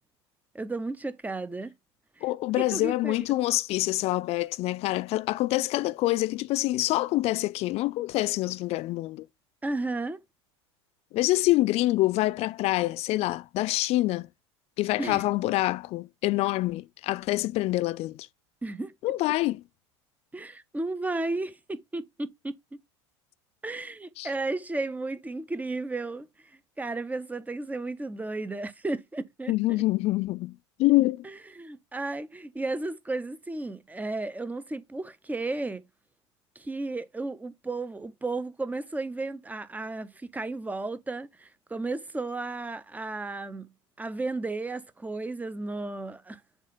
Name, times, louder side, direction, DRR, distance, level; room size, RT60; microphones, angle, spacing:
voice 1, 0.5-1.7 2.2-2.3 2.6-3.2 9.6-10.2 15.0-15.3 18.6-18.9 20.3-22.5 23.6-26.3 26.8-29.8 31.2-35.8 36.6-43.7 44.0-46.4, right 2 dB, 10° right, 0.6 m, -33 dB
voice 2, 2.2-9.3 11.1-14.3 14.8-18.3 19.0-19.6 24.2-24.3 29.5-31.2, left 18 dB, 45° left, 0.4 m, -26 dB
7.3 x 2.5 x 5.1 m
hypercardioid pair, 80°, 15 cm